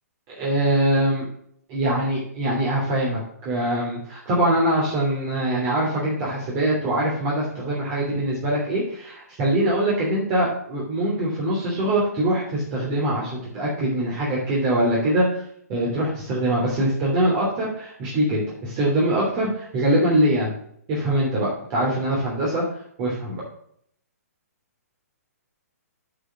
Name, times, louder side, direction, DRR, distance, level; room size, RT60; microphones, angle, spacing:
voice 1, 0.4-1.2 1.7-15.4 15.7-20.5 20.9-22.6 23.0-23.4, right 1 dB, 30° right, -5 dB, 3.0 m, -23 dB
8.5 x 5.7 x 6.0 m, 0.66 s
hypercardioid pair, 130°, 9 cm